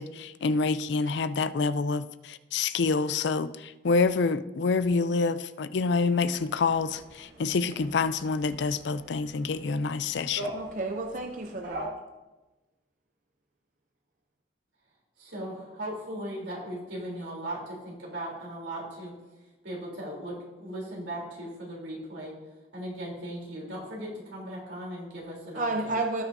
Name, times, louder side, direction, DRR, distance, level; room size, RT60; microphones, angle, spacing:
voice 1, 0.0-10.5, left 4 dB, 70° left, 14 dB, 0.4 m, -27 dB
sound 1, 6.3-11.9, right 1 dB, 60° right, 1.8 m, -43 dB
voice 2, 10.5-11.9 25.5-26.2, right 2 dB, 40° right, 4 dB, 0.6 m, -31 dB
voice 3, 15.2-19.1 19.6-22.3 22.7-26.0, right 1 dB, 85° right, -4 dB, 3.4 m, -38 dB
17.5 x 5.9 x 2.7 m, 1.1 s
head